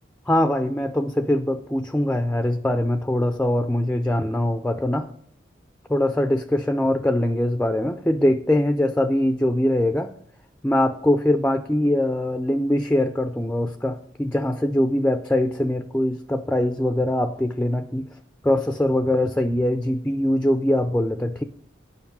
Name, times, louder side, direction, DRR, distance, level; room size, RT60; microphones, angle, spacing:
voice 1, 0.3-5.1 5.9-10.1 10.6-18.1 18.4-21.4, left 1 dB, 5° left, 8 dB, 0.4 m, -22 dB
9.5 x 5.3 x 7.2 m, 0.64 s
head